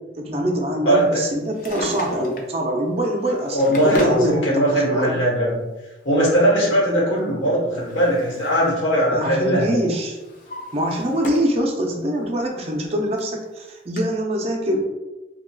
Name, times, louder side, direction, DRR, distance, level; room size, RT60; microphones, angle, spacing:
voice 1, 0.1-5.2 9.1-10.2 10.7-14.8, right 1 dB, 35° right, 0 dB, 0.5 m, -24 dB
Drawer open or close, 1.4-2.6 3.3-4.2 5.3-5.4 7.2-8.7 9.0-9.4 9.9-11.6 12.0-12.1 12.8-12.9 13.2-13.3 14.0-14.1, equal, 45° left, 0.5 m, -33 dB
voice 2, 3.3-5.6 6.0-9.8, equal, 90° left, -5 dB, 1.1 m, -20 dB
4.1 x 2.2 x 2.2 m, 1.1 s
head